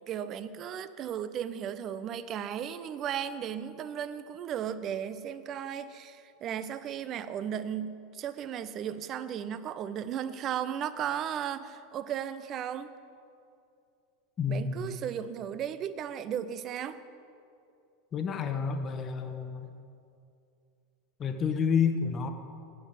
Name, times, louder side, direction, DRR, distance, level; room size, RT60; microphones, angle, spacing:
voice 1, 0.0-12.9 14.5-17.0, right 9 dB, 35° right, 13 dB, 0.7 m, -35 dB
voice 2, 14.4-14.9 18.1-19.7 21.2-22.3, left 6 dB, 30° left, 6 dB, 1.3 m, -29 dB
15.0 x 10.0 x 7.5 m, 2.5 s
figure-of-eight pair, 85°, 0 cm